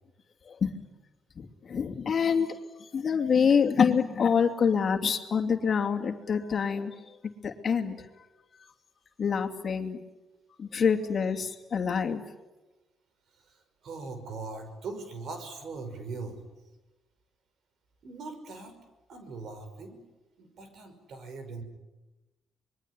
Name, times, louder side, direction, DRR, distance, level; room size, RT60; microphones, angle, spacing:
voice 1, 0.5-0.8 1.4-2.5 2.8-7.1 7.4-8.1 9.2-10.0 10.6-12.2, left 6 dB, 45° left, 4 dB, 2.7 m, -26 dB
voice 2, 13.3-16.4 18.0-18.7 19.1-20.0 20.4-21.6, right 3 dB, 65° right, 8 dB, 5.8 m, -41 dB
26.0 x 22.0 x 9.9 m, 1.1 s
cardioid pair, 90°, 0 cm